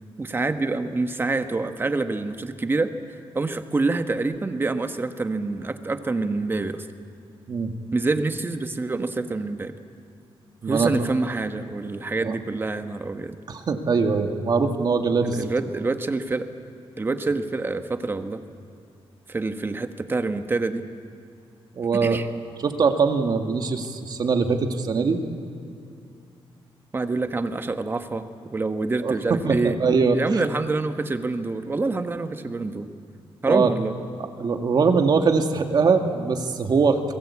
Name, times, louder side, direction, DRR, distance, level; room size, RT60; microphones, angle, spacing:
voice 1, 0.2-6.9 7.9-9.7 10.7-13.4 15.2-16.5 17.0-18.4 19.3-20.8 21.9-22.3 26.9-29.8 30.1-32.9 33.4-33.9, right 3 dB, 20° right, 8 dB, 1.3 m, -26 dB
voice 2, 13.5-15.4 21.8-22.2 22.6-25.2 29.0-29.1 29.4-30.2 33.5-33.7 34.4-37.1, right 5 dB, 45° right, 5 dB, 2.0 m, -22 dB
30.0 x 21.5 x 8.5 m, 2.5 s
wide cardioid pair, 155°, 10 cm